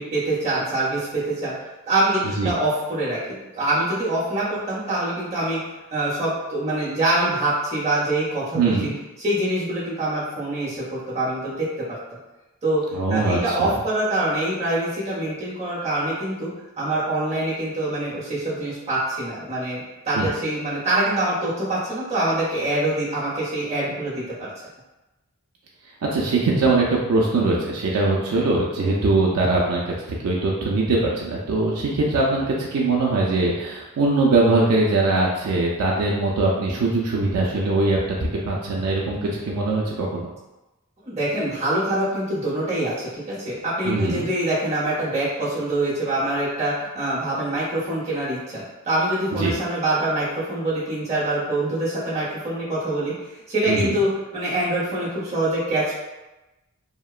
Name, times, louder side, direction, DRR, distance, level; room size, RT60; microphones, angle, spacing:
voice 1, 0.0-1.5 1.8-3.2 3.5-5.6 5.9-8.7 9.2-11.9 12.6-12.8 13.1-16.5 16.8-24.5 41.0-53.1 53.5-55.9, right 1 dB, 30° right, -9 dB, 0.8 m, -24 dB
voice 2, 8.5-8.9 12.9-13.7 20.1-20.3 26.0-40.3 43.8-44.2 49.4-49.5 53.7-54.0, right 2 dB, 80° right, -3 dB, 0.4 m, -22 dB
2.8 x 2.1 x 2.3 m, 1.0 s
head